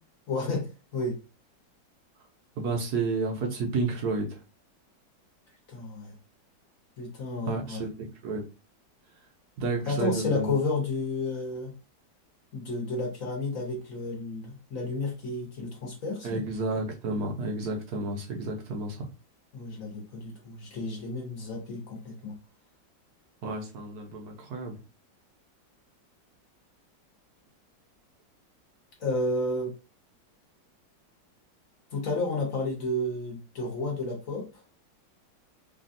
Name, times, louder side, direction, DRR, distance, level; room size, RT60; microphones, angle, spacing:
voice 1, 0.3-1.2 5.7-6.1 7.0-7.8 9.9-11.7 12.5-16.4 19.5-22.4 29.0-29.8 31.9-34.6, left 2 dB, 55° left, 0 dB, 1.2 m, -31 dB
voice 2, 2.6-4.4 7.5-7.9 8.2-8.4 9.6-10.5 16.2-19.1 23.4-24.8, right 3 dB, 70° right, 1 dB, 1.1 m, -31 dB
3.3 x 2.4 x 2.5 m, 0.30 s
omnidirectional pair, 1.9 m